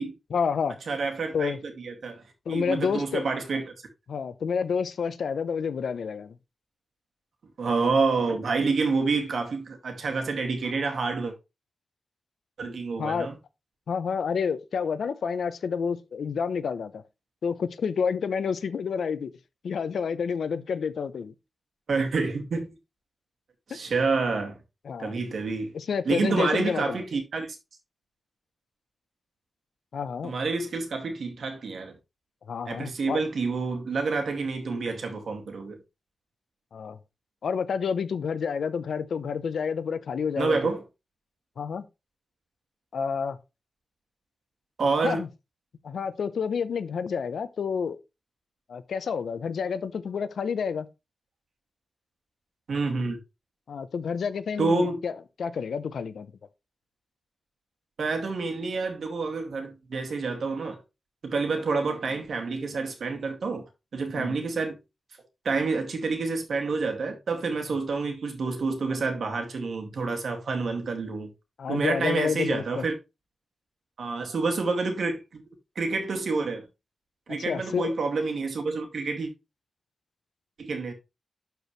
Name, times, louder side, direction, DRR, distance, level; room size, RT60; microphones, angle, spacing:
voice 1, 0.3-0.8 1.3-1.6 2.5-3.2 4.1-6.3 13.0-13.3 13.9-17.0 17.4-19.3 19.6-21.3 24.8-25.1 25.7-27.0 29.9-30.3 32.5-33.2 36.7-37.0 37.4-40.6 41.6-41.8 42.9-43.4 45.0-45.3 45.8-48.0 48.7-50.9 53.7-55.1 55.4-56.3 64.1-64.4 71.6-72.8 77.5-77.9, left 6 dB, 85° left, 0.7 m, -29 dB
voice 2, 0.9-2.2 2.5-3.7 7.6-11.3 12.6-13.4 21.9-22.7 23.7-24.6 25.0-25.7 26.1-27.5 30.2-32.0 32.7-35.8 40.4-40.8 44.8-45.2 52.7-53.2 54.6-55.0 58.0-60.8 61.2-63.6 63.9-64.8 65.4-71.3 71.7-72.9 74.0-75.4 75.8-76.6 77.3-79.3 80.6-80.9, right 4 dB, 65° right, 2.2 m, -28 dB
12.0 x 4.6 x 3.2 m
wide cardioid pair, 165°, 0 cm